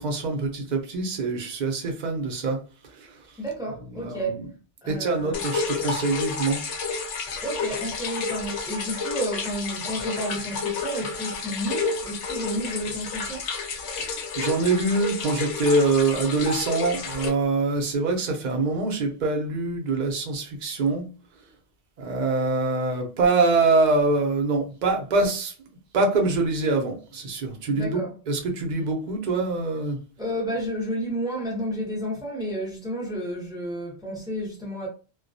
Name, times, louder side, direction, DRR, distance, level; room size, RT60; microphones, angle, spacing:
voice 1, 0.0-2.6 4.0-4.2 4.9-6.6 14.0-21.0 22.0-25.5 25.9-30.0, right 3 dB, 50° right, 0.6 m, -24 dB
voice 2, 3.4-4.5 4.8-5.5 7.4-13.4 27.7-28.2 30.2-34.9, equal, 5° right, 0.5 m, -31 dB
sound 1, 5.3-17.3, left 4 dB, 80° left, 0.9 m, -30 dB
2.3 x 2.1 x 2.6 m
omnidirectional pair, 1.2 m